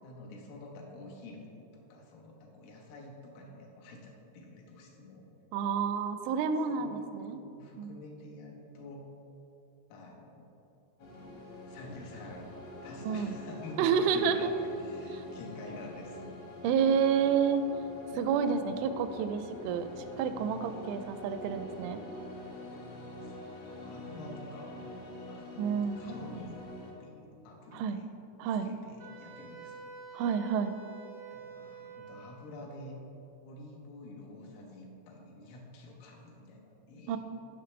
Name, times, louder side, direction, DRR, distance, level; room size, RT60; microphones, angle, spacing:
voice 1, 0.0-5.3 6.7-9.1 9.9-10.5 11.7-12.6 12.8-16.4 22.8-26.6 27.0-28.1 28.6-29.9 31.3-33.0 33.4-37.2, left 2 dB, 85° left, -1 dB, 3.7 m, -48 dB
voice 2, 5.5-7.4 7.8-8.0 13.1-13.4 13.8-14.4 15.1-15.2 16.6-17.6 18.1-19.9 20.2-22.0 25.6-26.0 27.7-28.0 28.4-28.7 30.1-30.8 37.1-37.2, right 7 dB, 85° right, 9 dB, 2.9 m, -29 dB
sound 1, 11.0-26.9, left 1 dB, 65° left, 1.8 m, -45 dB
Wind instrument woodwind instrument, 29.0-32.4, right 5 dB, 60° right, 1.0 m, -48 dB
15.5 x 5.7 x 3.2 m, 2.9 s
omnidirectional pair, 5.6 m